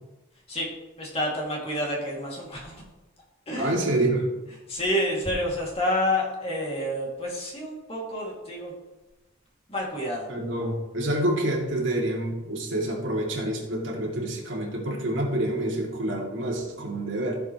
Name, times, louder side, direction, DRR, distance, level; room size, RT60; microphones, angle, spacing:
voice 1, 0.5-2.8 3.5-3.8 4.7-8.7 9.7-10.3, left 1 dB, 30° left, -3 dB, 2.5 m, -29 dB
voice 2, 3.5-4.3 10.3-17.4, right 1 dB, 70° right, -1 dB, 2.5 m, -27 dB
15.0 x 7.3 x 3.1 m, 1.1 s
head